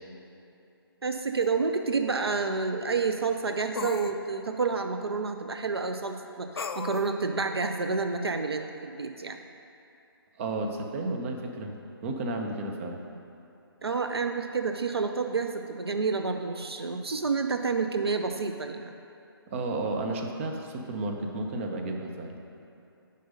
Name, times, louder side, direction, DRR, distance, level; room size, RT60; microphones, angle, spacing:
voice 1, 1.0-9.4 13.8-18.9, right 4 dB, 80° right, 6 dB, 0.6 m, -29 dB
sound 1, 1.4-1.5 3.8-4.2 6.6-7.1, left 5 dB, 70° left, 0.4 m, -34 dB
voice 2, 10.4-11.8 12.0-13.0 19.5-22.4, right 2 dB, 30° right, 2 dB, 0.7 m, -32 dB
7.8 x 5.4 x 5.2 m, 2.8 s
figure-of-eight pair, 140°, 13 cm